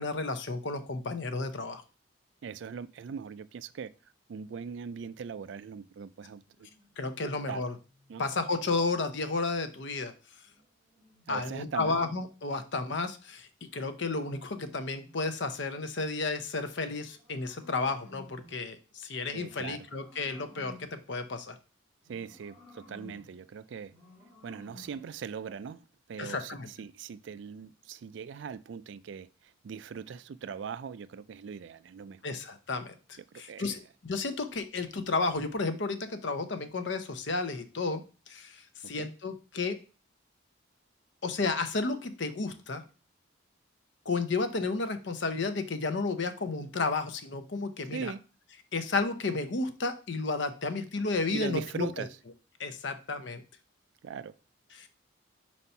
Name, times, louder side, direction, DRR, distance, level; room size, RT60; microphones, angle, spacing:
voice 1, 0.0-1.8 7.0-7.7 8.2-10.1 11.3-21.6 26.2-26.7 32.2-39.8 41.2-42.8 44.1-48.1 48.7-52.1 52.6-53.4 54.7-54.9, left 3 dB, 60° left, 0.7 m, -32 dB
voice 2, 2.4-3.9 4.3-6.7 7.2-7.7 8.1-8.2 11.3-12.0 19.3-19.9 22.1-23.9 24.4-25.8 26.1-32.2 33.3-33.8 39.0-39.1 47.9-48.2 51.3-52.1 54.0-54.3, right 6 dB, 65° right, 0.3 m, -40 dB
sound 1, 6.4-8.8 10.4-12.2 13.6-15.6 16.6-18.7 19.3-21.1 22.0-23.4 23.9-25.1, left 2 dB, 10° right, 2.9 m, -57 dB
4.5 x 4.2 x 5.4 m
head